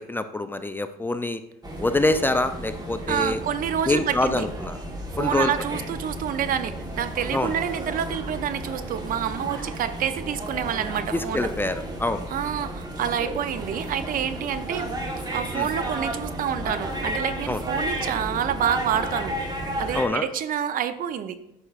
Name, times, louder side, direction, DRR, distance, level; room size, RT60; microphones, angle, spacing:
voice 1, 0.0-1.4 1.8-3.4 3.9-4.8 5.2-5.5 7.3-7.5 11.1-12.3 15.5-15.7 17.5-17.6 19.9-20.3, left 2 dB, 10° left, 10 dB, 0.4 m, -25 dB
sound 1, 1.6-20.1, right 1 dB, 25° right, 1.3 m, -33 dB
voice 2, 3.1-4.5 5.2-11.5 12.3-14.9 15.3-19.4 19.8-21.4, right 9 dB, 55° right, 12 dB, 0.6 m, -28 dB
9.7 x 5.8 x 2.4 m, 0.84 s
cardioid pair, 110°, 17 cm